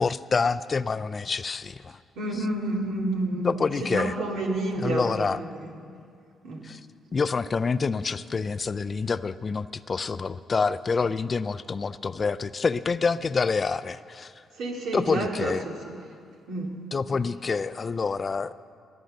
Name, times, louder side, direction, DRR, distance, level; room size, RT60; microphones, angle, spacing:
voice 1, 0.0-2.0 2.4-2.5 3.4-4.2 4.8-5.4 6.6-6.8 7.1-14.3 14.9-15.7 16.9-18.5, left 4 dB, 35° left, 14 dB, 0.4 m, -27 dB
voice 2, 2.2-3.5 3.8-5.5 6.4-6.7 14.6-15.9 16.5-16.8, right 2 dB, 80° right, 0 dB, 2.4 m, -29 dB
21.5 x 8.0 x 6.6 m, 2.3 s
cardioid pair, 90°, 0 cm